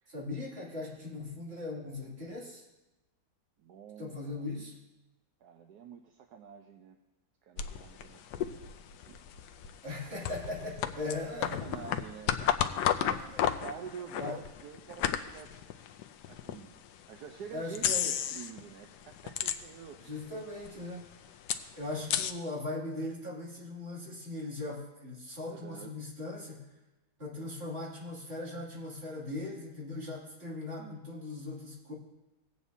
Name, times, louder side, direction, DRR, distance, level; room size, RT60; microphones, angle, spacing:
voice 1, 0.1-2.7 4.0-4.8 9.8-11.6 13.0-13.4 14.2-14.4 17.5-18.1 20.0-21.1 21.8-26.6 27.2-31.9, left 2 dB, 35° right, -5 dB, 2.9 m, -39 dB
voice 2, 3.6-4.5 5.4-7.0 7.4-8.7 9.0-9.2 11.4-12.6 13.0-15.9 16.3-16.8 17.1-20.3 25.4-25.9 30.8-31.0, right 7 dB, 70° right, 5 dB, 1.2 m, -48 dB
sound 1, 7.6-16.6 17.1-17.2 17.8-18.6 18.9-20.0 20.3-20.4 20.6-22.3, left 10 dB, 80° left, 1.2 m, -33 dB
18.5 x 8.2 x 2.7 m, 1.0 s
omnidirectional pair, 1.8 m